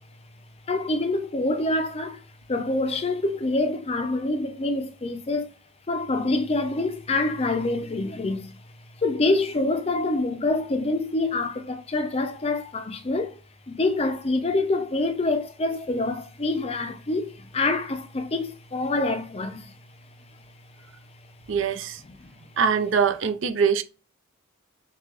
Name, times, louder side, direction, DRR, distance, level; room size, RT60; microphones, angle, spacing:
voice 1, 0.7-2.2 2.5-5.5 5.9-8.5 9.0-13.4 13.7-19.8 22.2-22.3, left 2 dB, 30° left, 0.5 m, -26 dB
voice 2, 21.5-22.0 22.6-23.8, right 6 dB, 60° right, 0.5 m, -23 dB
6.3 x 2.4 x 2.4 m
head